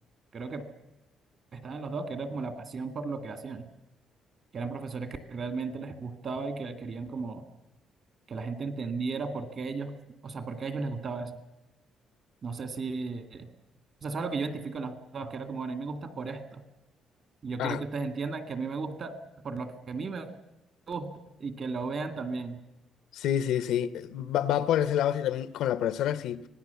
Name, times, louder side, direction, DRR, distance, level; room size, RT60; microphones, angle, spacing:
voice 1, 0.3-0.6 1.5-3.7 4.5-7.4 8.3-9.9 10.2-11.3 12.4-13.5 14.0-16.6 17.4-19.1 19.4-20.3 20.9-21.1 21.4-22.6, right 4 dB, 40° right, 2.1 m, -35 dB
voice 2, 23.1-26.5, left 10 dB, 85° left, 0.8 m, -28 dB
25.0 x 18.5 x 7.0 m
cardioid pair, 155°, 0 cm